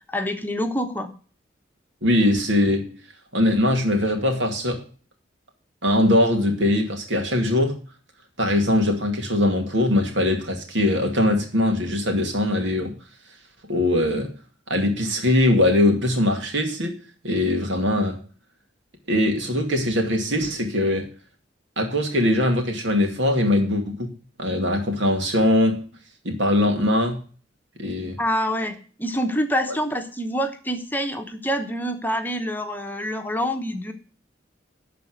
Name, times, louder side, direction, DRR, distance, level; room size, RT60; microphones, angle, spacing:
voice 1, 0.1-1.1 28.2-33.9, equal, 10° left, 6 dB, 0.9 m, -26 dB
voice 2, 2.0-2.9 3.3-4.8 5.8-7.8 8.4-12.9 13.7-14.3 14.7-16.9 17.2-18.2 19.1-21.1 21.8-24.1 24.4-25.8 26.2-27.2 27.8-28.2, left 1 dB, 90° right, 3 dB, 2.4 m, -21 dB
12.0 x 4.2 x 7.9 m, 0.40 s
head